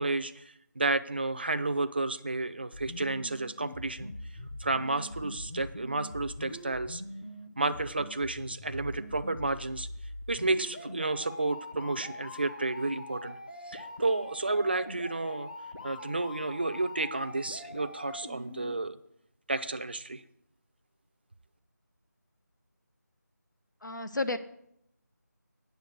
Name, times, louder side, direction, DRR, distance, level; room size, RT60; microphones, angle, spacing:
voice 1, 0.0-4.1 4.6-7.0 7.6-9.9 10.3-13.4 13.7-15.5 15.8-19.0 19.5-20.2, right 2 dB, 35° right, 10 dB, 0.4 m, -31 dB
sound 1, 2.7-18.7, left 1 dB, 25° left, 0.7 m, -43 dB
voice 2, 23.8-24.4, left 2 dB, 80° left, 9 dB, 1.0 m, -31 dB
9.2 x 6.9 x 6.5 m, 0.75 s
figure-of-eight pair, 170°, 10 cm